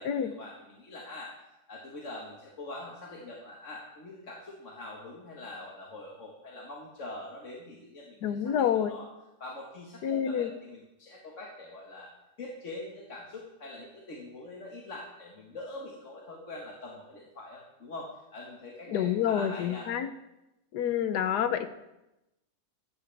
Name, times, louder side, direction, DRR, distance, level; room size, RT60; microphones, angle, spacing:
voice 1, 0.0-9.1 9.4-12.1 12.4-19.9, left 2 dB, 50° left, -2 dB, 1.8 m, -44 dB
voice 2, 8.2-8.9 10.0-10.5 18.9-20.1 20.7-21.7, left 9 dB, 80° left, 10 dB, 1.4 m, -28 dB
14.0 x 12.0 x 3.4 m, 0.93 s
omnidirectional pair, 1.8 m